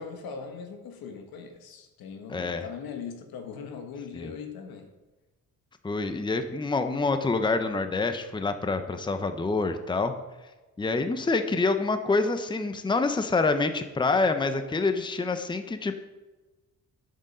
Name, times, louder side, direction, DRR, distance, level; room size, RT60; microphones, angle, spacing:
voice 1, 0.0-4.9, left 6 dB, 85° left, 5 dB, 1.4 m, -40 dB
voice 2, 2.3-2.6 4.1-4.3 5.8-10.1 10.8-15.9, left 3 dB, 15° left, 8 dB, 0.7 m, -26 dB
8.7 x 6.6 x 5.5 m, 1.1 s
cardioid pair, 90°, 35 cm